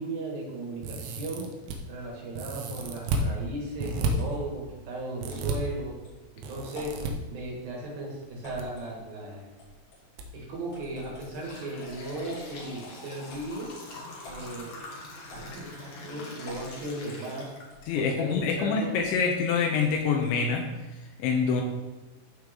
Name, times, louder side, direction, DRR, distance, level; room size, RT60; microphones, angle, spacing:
voice 1, 0.0-1.5 1.9-5.9 6.3-7.0 7.3-9.5 10.3-13.7 14.3-14.7 15.3-17.5 17.9-19.0, right 2 dB, 55° right, -2 dB, 3.2 m, -36 dB
sound 1, 0.8-1.8 2.3-3.3 3.8-4.1 5.2-5.6 6.4-7.1 8.2-8.6 8.9-9.0 10.2-10.3 10.7-10.8, right 4 dB, 75° right, 2.9 m, -32 dB
sound 2, 2.7-3.1 4.2-4.4 5.3-5.5 6.0-6.1 6.7-7.1 8.4-8.9 9.6-10.0 10.7-11.4 11.8-12.7 13.3-13.6 14.2-14.5 15.3-15.9 16.4-16.8 17.7-18.0 18.3-18.5 18.9-19.2 19.8-20.5, left 1 dB, 45° left, 5.0 m, -48 dB
sound 3, 11.2-18.1 18.5-18.6 19.5-19.6 20.1-20.2 20.6-20.8, left 2 dB, 60° left, 1.8 m, -44 dB
voice 2, 17.9-20.7 21.2-21.6, left 5 dB, 80° left, 3 dB, 2.9 m, -26 dB
15.0 x 5.3 x 3.6 m, 1.1 s
omnidirectional pair, 5.7 m